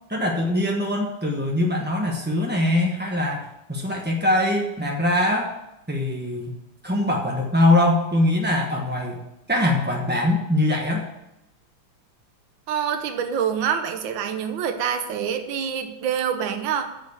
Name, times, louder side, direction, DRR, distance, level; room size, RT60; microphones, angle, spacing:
voice 1, 0.1-5.5 5.9-6.5 6.8-9.2 9.5-11.1, left 1 dB, 10° right, -1 dB, 0.4 m, -22 dB
voice 2, 12.7-16.9, right 8 dB, 65° right, 7 dB, 1.7 m, -26 dB
7.9 x 6.9 x 8.2 m, 0.89 s
omnidirectional pair, 2.4 m